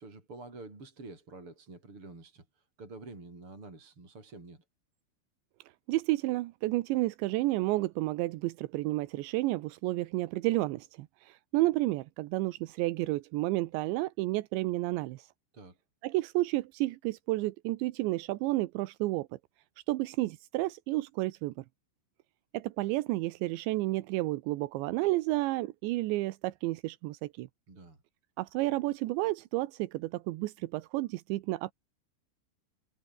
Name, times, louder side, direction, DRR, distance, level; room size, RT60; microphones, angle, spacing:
voice 1, 0.0-4.6 15.5-15.8 27.7-28.0, right 2 dB, 30° right, 7.2 m, -48 dB
voice 2, 5.9-15.3 16.0-19.3 19.9-21.6 22.5-27.5 28.4-31.7, right 19 dB, 80° right, 3.1 m, -31 dB
omnidirectional pair, 5.3 m